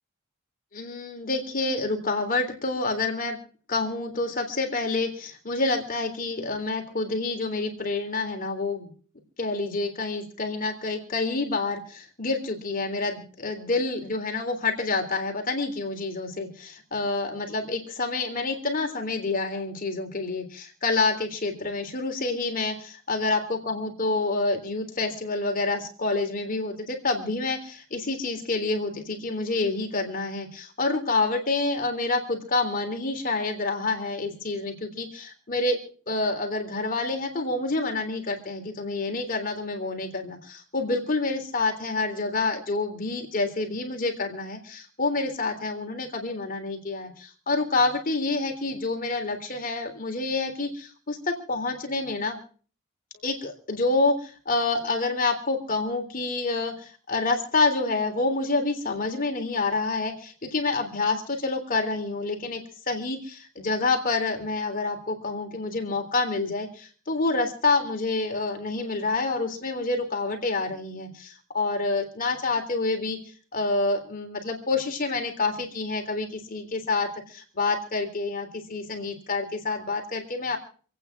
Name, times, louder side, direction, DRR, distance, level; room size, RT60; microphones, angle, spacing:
voice 1, 0.7-3.4 3.7-8.9 9.4-35.8 36.1-52.4 53.2-62.6 62.9-73.2 73.5-80.6, left 3 dB, 45° left, 4 dB, 3.5 m, -28 dB
27.5 x 9.2 x 4.6 m, 0.42 s
head